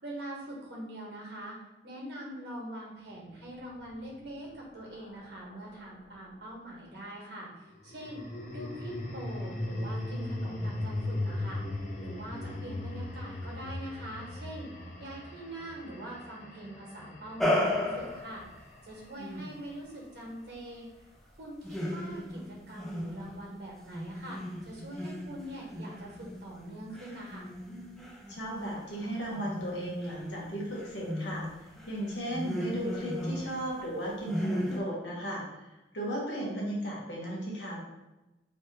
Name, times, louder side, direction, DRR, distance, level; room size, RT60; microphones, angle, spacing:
voice 1, 0.0-1.6 1.8-8.2 8.5-11.6 12.0-14.7 15.0-18.4 18.8-20.9 21.4-27.5, right 1 dB, 65° right, -3 dB, 1.3 m, -43 dB
sound 1, 3.6-6.1 7.7-20.0, left 1 dB, 45° left, 0.6 m, -39 dB
sound 2, 17.4-18.5 21.6-23.5 23.9-33.9 34.3-34.8, left 1 dB, ahead, 0.4 m, -35 dB
voice 2, 19.2-19.5 28.3-35.6 35.9-37.8, equal, 75° left, -4 dB, 1.3 m, -35 dB
3.3 x 2.9 x 4.6 m, 1.0 s
head